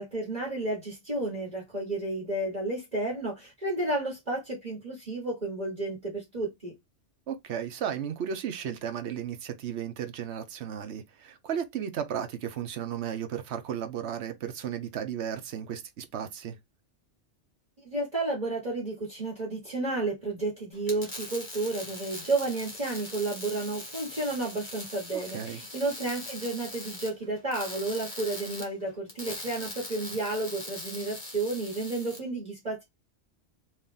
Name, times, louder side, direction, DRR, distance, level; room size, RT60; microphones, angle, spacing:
voice 1, 0.0-6.7 17.8-32.8, right 2 dB, 35° right, 1.6 m, -32 dB
voice 2, 7.3-16.6 25.1-25.6, right 8 dB, 70° right, 1.0 m, -34 dB
sound 1, 20.7-32.2, left 2 dB, 35° left, 1.5 m, -41 dB
3.2 x 2.9 x 3.7 m
omnidirectional pair, 1.2 m